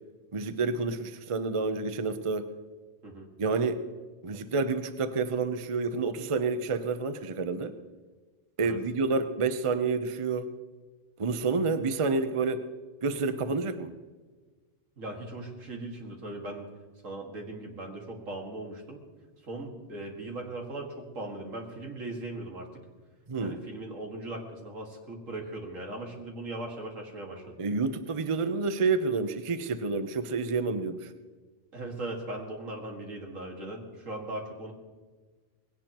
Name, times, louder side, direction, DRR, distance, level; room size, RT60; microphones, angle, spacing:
voice 1, 0.3-2.5 3.4-3.8 4.2-7.7 8.6-10.5 11.2-12.6 13.0-13.9 23.3-23.6 27.6-31.1, right 4 dB, 30° right, 9 dB, 0.6 m, -29 dB
voice 2, 15.0-16.7 17.0-19.0 19.4-22.9 23.4-27.6 31.7-34.7, right 2 dB, 75° right, 1 dB, 2.4 m, -39 dB
20.0 x 17.0 x 3.0 m, 1.4 s
omnidirectional pair, 1.3 m